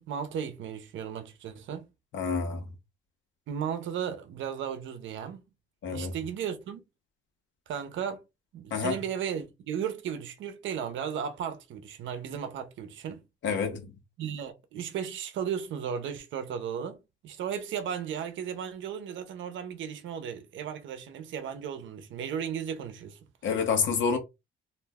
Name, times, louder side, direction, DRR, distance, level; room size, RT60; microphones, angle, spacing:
voice 1, 0.0-1.9 3.5-5.4 5.9-6.8 7.7-8.2 8.5-13.2 14.2-17.0 17.2-23.2, right 8 dB, 75° right, 0.6 m, -35 dB
voice 2, 2.1-2.6 5.8-6.1 8.7-9.0 13.4-13.9 23.4-24.2, left 5 dB, 70° left, 1.0 m, -28 dB
2.6 x 2.1 x 3.5 m
cardioid pair, 90°, 20 cm